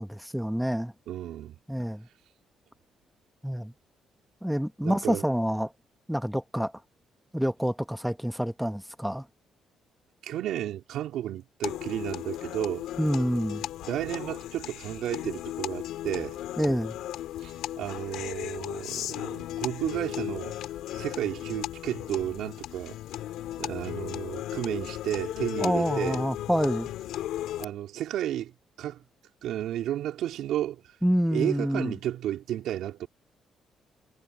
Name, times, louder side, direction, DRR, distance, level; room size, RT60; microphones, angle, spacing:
voice 1, 0.0-0.9 1.7-2.1 3.4-3.7 4.4-5.7 6.1-6.7 7.3-9.3 13.0-13.7 16.6-17.0 25.6-26.9 31.0-31.9, equal, ahead, 1.2 m, -27 dB
voice 2, 1.1-1.6 4.8-5.2 10.2-12.9 13.8-16.4 17.4-20.5 20.9-23.0 23.6-26.2 27.6-28.5 28.8-29.0 29.4-30.8 31.3-33.1, right 12 dB, 80° right, 3.6 m, -32 dB
sound 1, 11.6-27.6, left 13 dB, 85° left, 2.9 m, -36 dB
cardioid pair, 90°, 0 cm